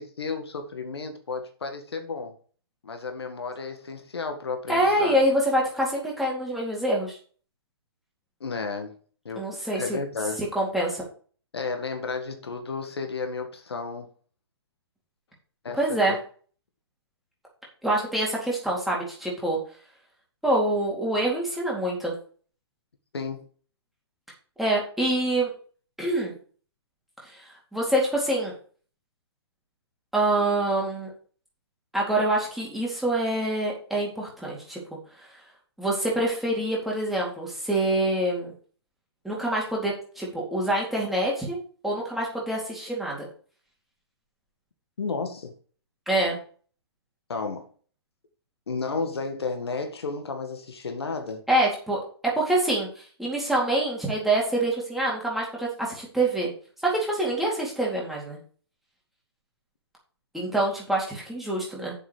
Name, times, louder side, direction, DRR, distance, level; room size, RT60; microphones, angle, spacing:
voice 1, 0.0-2.4 2.8-5.2 8.4-9.0 9.3-9.4 9.7-10.4 11.5-14.1 15.6-16.2 23.1-23.5 45.0-45.5 47.3-47.7 48.7-51.4, left 4 dB, 70° left, 1.9 m, -32 dB
voice 2, 4.7-7.2 9.4-10.0 10.4-11.0 15.8-16.2 17.8-19.6 20.4-22.2 24.6-25.5 26.0-26.3 27.2-27.4 27.7-28.5 30.1-31.1 31.9-34.8 35.2-35.3 35.8-38.5 39.2-41.6 41.8-43.3 46.1-46.4 51.5-56.5 56.8-58.4 60.3-61.9, right 1 dB, ahead, 4.0 m, -26 dB
8.6 x 7.3 x 5.0 m
figure-of-eight pair, 125°, 14 cm